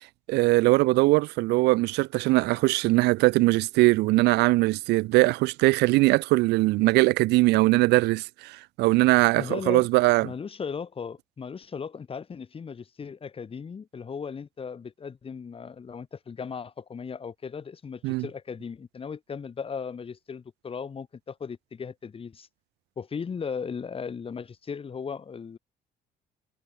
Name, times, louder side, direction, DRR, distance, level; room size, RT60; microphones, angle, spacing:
voice 1, 0.3-10.3 18.0-18.2, right 21 dB, 85° right, 0.4 m, -21 dB
voice 2, 9.4-9.9 10.2-22.5 23.0-25.6, left 6 dB, 35° left, 3.5 m, -37 dB
cardioid pair, 110°, 17 cm